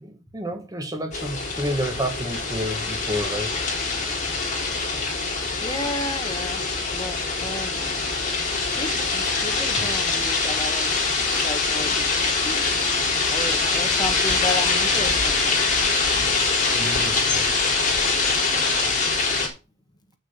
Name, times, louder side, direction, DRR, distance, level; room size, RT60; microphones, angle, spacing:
voice 1, 0.0-3.6 9.8-9.9 16.7-17.5, equal, 20° right, 1.3 m, -30 dB
sound 1, 1.1-19.5, left 4 dB, 40° left, 3.6 m, -24 dB
voice 2, 5.6-6.6 6.9-8.0 8.7-10.9 11.3-12.9 13.3-15.4, left 2 dB, 20° left, 1.5 m, -33 dB
8.6 x 6.5 x 5.7 m
head